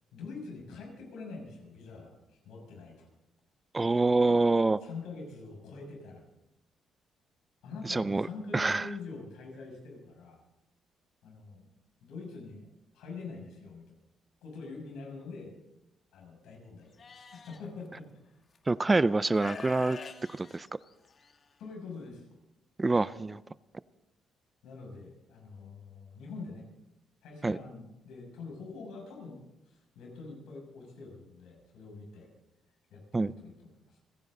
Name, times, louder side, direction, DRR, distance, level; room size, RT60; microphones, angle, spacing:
voice 1, 0.1-3.1 4.8-6.2 7.6-10.4 11.2-11.7 12.0-12.7 12.9-13.8 14.4-15.5 16.1-18.1 21.6-22.2 24.6-26.6 27.2-29.4 29.7-32.3 32.9-33.5 33.9-34.0, left 4 dB, 85° left, 0 dB, 6.4 m, -45 dB
voice 2, 3.7-4.8 7.8-8.3 8.5-8.9 18.7-20.0 20.3-20.7 22.8-23.4 27.4-27.6 33.1-33.3, right 3 dB, 20° right, 17 dB, 0.4 m, -26 dB
Livestock farm animals working animals, 17.0-17.6 18.6-18.7 19.3-21.4, left 5 dB, 45° left, 1.4 m, -44 dB
29.5 x 10.5 x 3.8 m, 0.90 s
cardioid pair, 90°, 0 cm